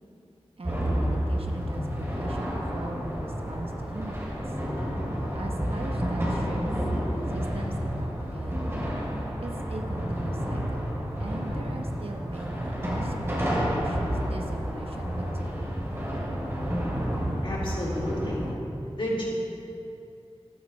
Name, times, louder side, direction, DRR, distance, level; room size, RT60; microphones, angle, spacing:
sound 1, 0.6-18.5, equal, 25° right, 2.9 m, -30 dB
voice 1, 0.6-4.5 5.3-6.7 7.3-8.7 9.4-10.9 11.2-15.5, right 2 dB, 65° right, 2 dB, 1.1 m, -40 dB
voice 2, 17.4-18.4 18.9-19.2, equal, 55° left, -6 dB, 3.0 m, -31 dB
14.0 x 12.0 x 3.3 m, 2.7 s
wide cardioid pair, 70°, 10 cm